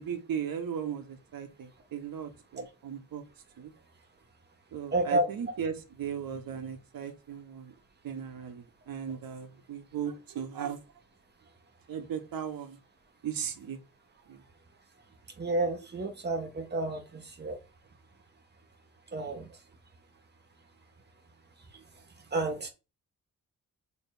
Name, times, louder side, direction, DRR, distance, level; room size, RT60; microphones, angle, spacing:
voice 1, 0.0-3.2 3.6-3.7 4.7-7.7 8.0-10.8 11.9-12.8 13.2-13.8 14.3-14.4, right 8 dB, 85° right, 1.3 m, -37 dB
voice 2, 4.9-5.3 15.4-17.6 19.1-19.6 21.7-21.8 22.3-22.7, right 2 dB, 30° right, 1.5 m, -30 dB
7.2 x 3.3 x 4.6 m
wide cardioid pair, 150°, 34 cm